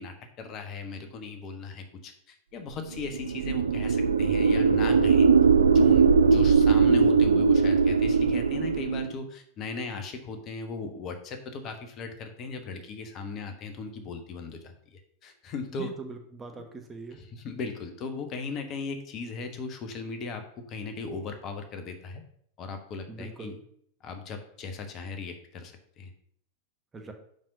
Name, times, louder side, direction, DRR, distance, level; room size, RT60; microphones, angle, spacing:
voice 1, 0.0-5.3 5.7-15.9 16.5-16.7 17.1-20.4 20.7-22.2 22.6-23.6 24.0-26.1, left 4 dB, 35° left, 6 dB, 1.2 m, -38 dB
sound 1, 3.0-9.1, right 5 dB, 70° right, 0.4 m, -20 dB
voice 2, 15.7-17.2 23.1-23.6 26.9-27.1, right 3 dB, 15° right, 4 dB, 1.1 m, -41 dB
5.5 x 5.3 x 6.6 m, 0.66 s
figure-of-eight pair, 90°, 0 cm